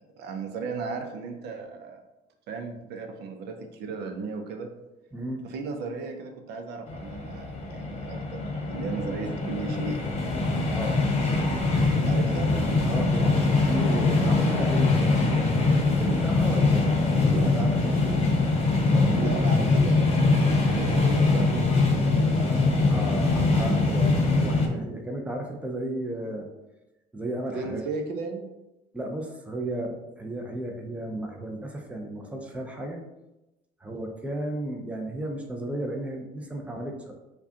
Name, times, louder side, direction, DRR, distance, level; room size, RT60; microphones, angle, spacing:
voice 1, 0.2-2.0 2.5-4.7 5.4-10.0 12.0-12.5 17.3-18.1 19.2-22.9 27.5-28.5, right 4 dB, 75° right, 5 dB, 0.6 m, -35 dB
voice 2, 5.1-5.4 10.7-11.0 12.2-18.0 18.8-19.7 22.9-26.5 27.1-27.9 28.9-33.0 33.8-37.1, right 1 dB, 10° right, 2 dB, 0.5 m, -34 dB
sound 1, 6.9-24.7, left 3 dB, 35° left, 0.8 m, -23 dB
4.7 x 2.3 x 2.8 m, 0.97 s
cardioid pair, 110°, 17 cm